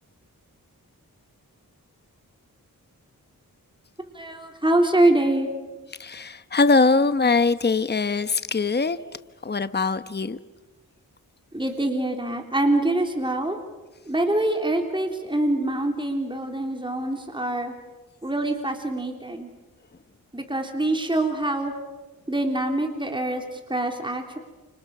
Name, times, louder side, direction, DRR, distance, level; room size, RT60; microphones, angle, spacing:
voice 1, 4.2-5.5 11.5-13.6 14.1-17.7 18.2-19.5 20.3-21.7 22.3-24.4, right 1 dB, 15° right, 3 dB, 3.5 m, -24 dB
voice 2, 6.0-9.0 9.4-10.4, left 4 dB, 30° left, 13 dB, 1.0 m, -22 dB
29.5 x 28.0 x 6.6 m, 1.2 s
cardioid pair, 60°, 36 cm